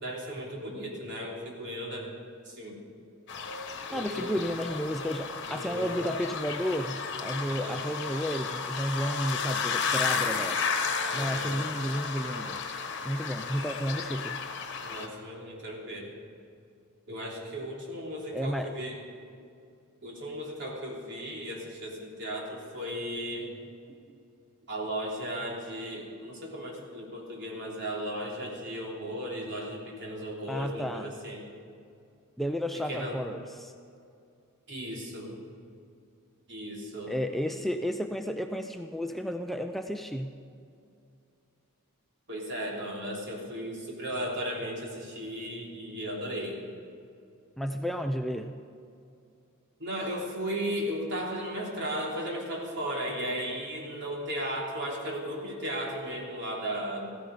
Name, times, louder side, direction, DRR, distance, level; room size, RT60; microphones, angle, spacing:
voice 1, 0.0-2.2 2.4-2.8 3.9-4.3 5.5-5.9 7.5-7.8 11.1-11.6 14.8-16.1 17.1-19.0 20.0-23.5 24.7-31.4 32.7-33.2 34.7-35.4 36.5-37.1 37.4-37.6 42.3-46.6 49.8-57.1, equal, 55° right, -2 dB, 3.2 m, -36 dB
sound 1, 3.3-15.1, left 5 dB, 55° left, 1.3 m, -33 dB
voice 2, 3.9-10.6 11.1-12.6 13.0-14.4 18.3-18.7 30.5-31.1 32.4-33.7 37.1-40.3 47.6-48.6, equal, ahead, 5 dB, 0.4 m, -32 dB
15.0 x 14.5 x 5.2 m, 2.5 s
head